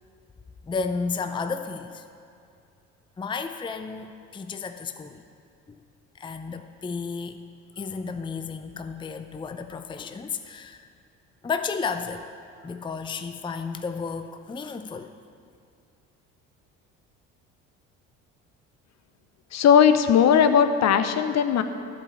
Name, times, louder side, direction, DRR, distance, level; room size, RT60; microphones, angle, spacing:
voice 1, 0.6-2.0 3.2-5.2 6.1-7.4 7.8-10.9 11.4-12.3 12.6-15.1, left 5 dB, 15° left, 8 dB, 0.6 m, -32 dB
voice 2, 19.5-21.6, left 8 dB, 50° left, 9 dB, 0.8 m, -18 dB
11.5 x 5.4 x 8.4 m, 2.4 s
hypercardioid pair, 65°, 35 cm